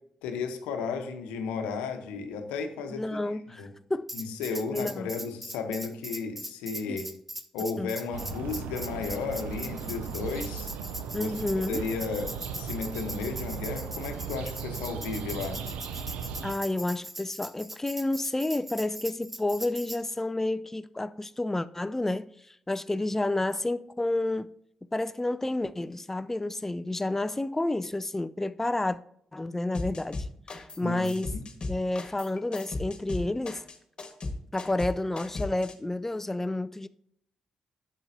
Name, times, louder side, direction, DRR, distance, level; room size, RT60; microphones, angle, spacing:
voice 1, 0.2-3.7 4.1-7.1 7.5-10.7 11.2-11.3 11.7-12.3 12.6-15.6 30.8-31.4, left 5 dB, 85° left, 0.8 m, -34 dB
voice 2, 3.0-4.1 4.7-5.1 6.9-7.0 7.8-7.9 11.1-11.8 16.4-24.5 24.9-29.0 29.3-30.3 30.8-31.3 31.7-33.6 34.5-36.9, left 2 dB, 15° left, 0.4 m, -30 dB
Tambourine, 4.1-20.0, equal, 5° right, 0.9 m, -41 dB
sound 1, 8.1-16.5, right 7 dB, 80° right, 0.5 m, -37 dB
sound 2, 29.7-30.8 31.0-35.7, left 3 dB, 45° left, 1.6 m, -36 dB
10.5 x 7.3 x 2.7 m
hypercardioid pair, 45°, 2 cm